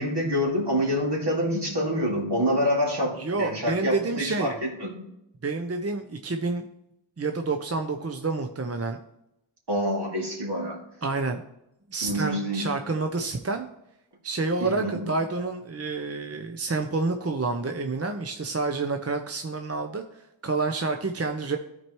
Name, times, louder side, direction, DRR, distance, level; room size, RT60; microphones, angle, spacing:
voice 1, 0.0-5.0 9.7-10.8 12.0-12.6 14.6-15.0, equal, 55° right, -1 dB, 2.4 m, -26 dB
voice 2, 3.2-4.5 5.4-6.6 7.2-9.0 11.0-11.4 11.9-13.7 14.2-21.6, right 3 dB, 30° right, 5 dB, 0.6 m, -28 dB
13.5 x 4.5 x 3.1 m, 0.83 s
wide cardioid pair, 45°, 48 cm